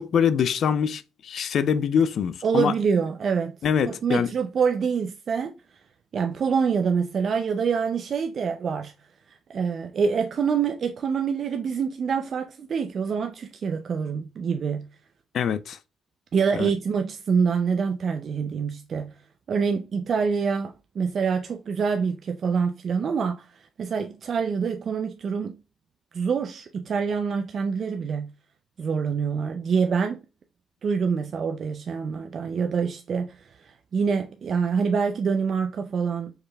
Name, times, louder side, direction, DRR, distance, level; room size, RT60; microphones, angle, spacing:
voice 1, 0.0-2.7 3.6-4.3 15.3-15.8 16.6-16.7, left 7 dB, 65° left, 0.4 m, -24 dB
voice 2, 2.4-3.6 3.9-5.8 6.1-8.9 9.3-14.9 16.3-19.1 19.5-25.5 26.1-28.3 28.8-30.2 30.8-36.3, right 6 dB, 55° right, 0.4 m, -26 dB
4.7 x 3.1 x 2.2 m
cardioid pair, 90°, 0 cm